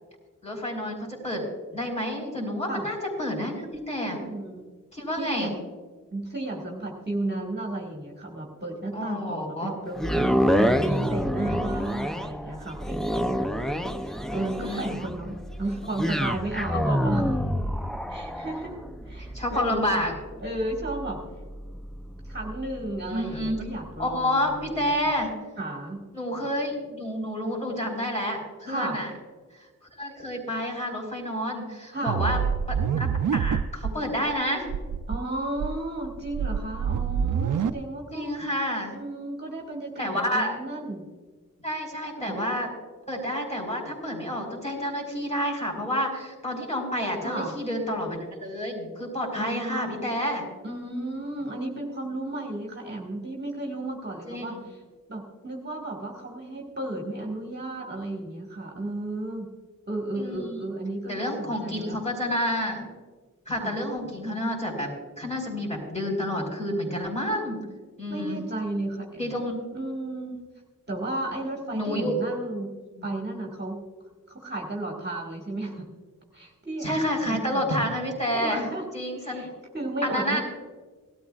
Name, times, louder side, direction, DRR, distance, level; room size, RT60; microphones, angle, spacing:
voice 1, 0.4-1.4 1.7-4.2 4.9-5.5 8.9-9.7 14.6-15.0 19.3-20.1 23.1-23.6 24.0-25.3 26.1-29.1 30.0-32.4 32.7-34.7 38.1-38.9 40.0-40.6 41.6-42.7 43.1-50.5 54.2-54.6 60.1-60.6 61.1-62.9 63.5-64.9 65.2-67.6 68.0-68.4 69.2-69.6 71.7-72.1 73.0-73.1 76.8-78.7 78.9-79.5 80.0-80.4, equal, 20° left, -1 dB, 4.5 m, -29 dB
voice 2, 4.1-4.7 5.2-5.5 6.1-17.4 18.1-18.8 19.1-19.9 20.4-21.2 22.3-24.4 25.6-26.0 28.7-29.0 31.9-32.2 35.1-38.3 38.9-41.0 42.2-42.4 47.2-47.5 49.4-50.1 50.6-54.8 55.1-59.5 59.9-61.9 63.5-63.8 68.1-69.3 69.7-70.4 70.9-72.7 73.0-73.8 74.3-75.8 76.3-77.7 78.3-78.8 79.2-80.4, right 2 dB, 30° right, -1 dB, 1.8 m, -33 dB
sound 1, 10.0-24.2 24.7-24.8, equal, ahead, 0.5 m, -28 dB
sound 2, 32.1-33.9 34.3-34.4 34.7-35.2 35.6-37.7, right 7 dB, 70° right, 0.5 m, -26 dB
18.0 x 12.5 x 2.4 m, 1.4 s
wide cardioid pair, 90°, 33 cm